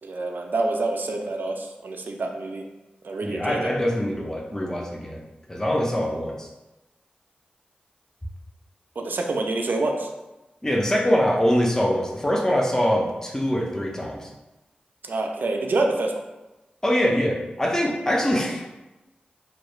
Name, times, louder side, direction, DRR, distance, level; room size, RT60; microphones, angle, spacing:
voice 1, 0.0-2.6 3.0-3.7 9.0-10.1 15.0-16.1, right 2 dB, 70° right, 2 dB, 0.3 m, -27 dB
voice 2, 3.2-5.2 5.5-6.5 10.6-14.3 16.8-18.6, equal, 15° left, -1 dB, 0.5 m, -23 dB
2.9 x 2.0 x 2.3 m, 1.0 s
cardioid pair, 45°, 3 cm